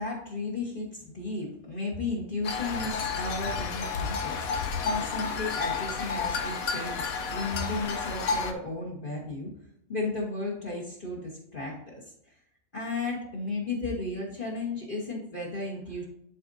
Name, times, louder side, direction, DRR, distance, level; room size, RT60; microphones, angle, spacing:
voice 1, 0.0-9.5 9.9-11.9 12.7-16.0, left 3 dB, 40° left, -3 dB, 1.3 m, -34 dB
sound 1, 2.4-8.5, left 5 dB, 80° left, 1.2 m, -31 dB
10.5 x 4.2 x 2.6 m, 0.73 s
omnidirectional pair, 1.4 m